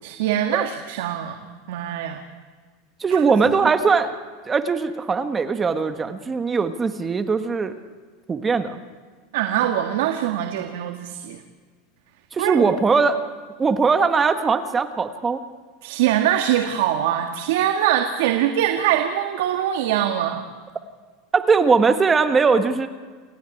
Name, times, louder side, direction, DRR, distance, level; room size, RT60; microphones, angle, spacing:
voice 1, 0.0-1.4 1.7-2.2 3.1-3.2 9.3-11.4 12.4-12.7 15.8-20.5, right 11 dB, 75° right, 5 dB, 1.8 m, -23 dB
voice 2, 3.0-4.1 4.4-7.7 8.3-8.8 12.3-13.3 13.6-15.4 21.3-22.9, right 5 dB, 15° right, 9 dB, 1.3 m, -20 dB
29.0 x 16.5 x 10.0 m, 1.5 s
supercardioid pair, 155°, 0 cm